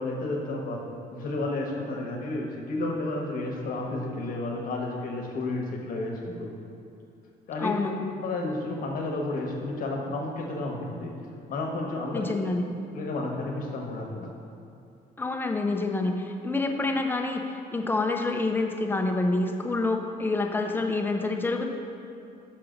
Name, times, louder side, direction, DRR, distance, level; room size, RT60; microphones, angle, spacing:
voice 1, 0.0-6.5 7.5-7.8 8.2-11.1 11.5-12.3 12.9-14.3, left 2 dB, 55° left, 1 dB, 1.2 m, -31 dB
voice 2, 7.6-8.0 12.1-12.7 15.2-21.7, left 2 dB, 10° left, 3 dB, 0.6 m, -27 dB
5.9 x 5.6 x 5.1 m, 2.5 s
cardioid pair, 110°, 17 cm